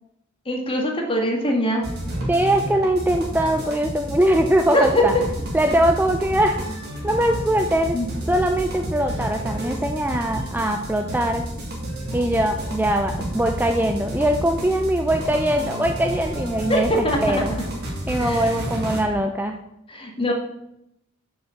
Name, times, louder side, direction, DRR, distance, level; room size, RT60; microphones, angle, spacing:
voice 1, 0.5-1.9 4.7-5.0 7.9-8.1 16.7-17.4 18.2-18.5 19.9-20.3, equal, 25° left, 0 dB, 1.9 m, -22 dB
sound 1, 1.8-19.0, right 1 dB, 55° right, 2.8 m, -30 dB
voice 2, 2.3-5.1 5.5-6.6 7.0-8.0 8.3-11.5 12.1-17.5 18.1-19.6, right 1 dB, 10° right, 4 dB, 0.5 m, -21 dB
7.0 x 6.4 x 7.1 m, 0.83 s
head